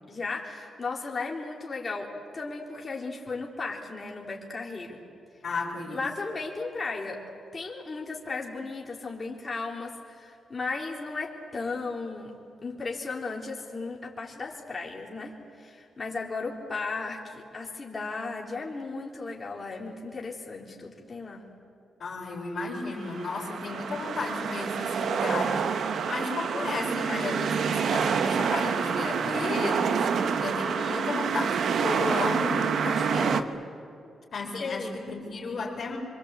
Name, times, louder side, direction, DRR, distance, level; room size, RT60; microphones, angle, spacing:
voice 1, 0.1-5.0 5.9-7.2 7.5-12.3 12.6-21.4 34.6-34.9, left 3 dB, 30° left, -2 dB, 3.6 m, -35 dB
voice 2, 5.4-6.0 22.0-33.5 34.3-36.0, left 3 dB, 60° left, -6 dB, 4.4 m, -34 dB
sound 1, 22.9-33.4, right 6 dB, 70° right, 1.1 m, -27 dB
25.0 x 25.0 x 8.2 m, 2.5 s
cardioid pair, 105°, 0 cm